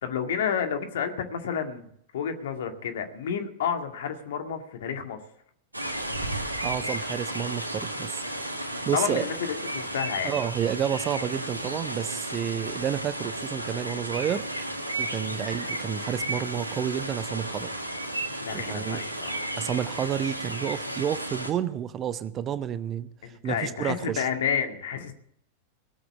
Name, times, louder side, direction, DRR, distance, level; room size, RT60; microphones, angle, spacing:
voice 1, 0.0-5.2 8.9-10.4 15.3-15.4 18.4-19.4 23.2-25.1, left 7 dB, 60° left, 6 dB, 2.2 m, -30 dB
sound 1, 5.7-21.5, right 1 dB, 85° right, 1.9 m, -33 dB
voice 2, 6.6-8.2 8.9-9.3 10.2-14.4 15.0-17.7 18.5-19.0 19.6-24.2, right 9 dB, 30° right, 14 dB, 0.9 m, -30 dB
18.0 x 8.0 x 8.5 m, 0.67 s
figure-of-eight pair, 90°, 0 cm